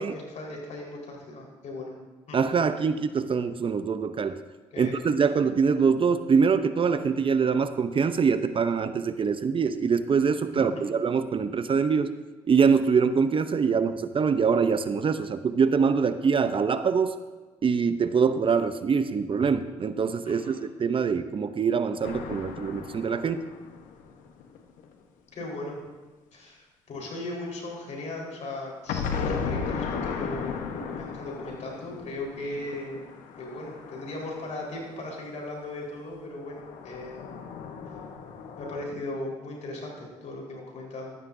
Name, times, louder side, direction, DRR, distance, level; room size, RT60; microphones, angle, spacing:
voice 1, 0.0-1.9 2.3-2.4 4.7-4.9 10.5-10.6 20.3-20.6 25.3-25.8 26.3-33.0 33.4-37.3 38.6-41.2, left 2 dB, 60° left, -1 dB, 4.4 m, -37 dB
voice 2, 2.3-4.4 4.8-12.1 12.5-17.1 17.6-23.4, right 5 dB, 40° right, 11 dB, 0.7 m, -24 dB
sound 1, 22.0-24.8 28.9-35.1 36.4-38.8, left 6 dB, 75° left, 1.1 m, -36 dB
15.0 x 13.0 x 2.7 m, 1.3 s
supercardioid pair, 65°, 13 cm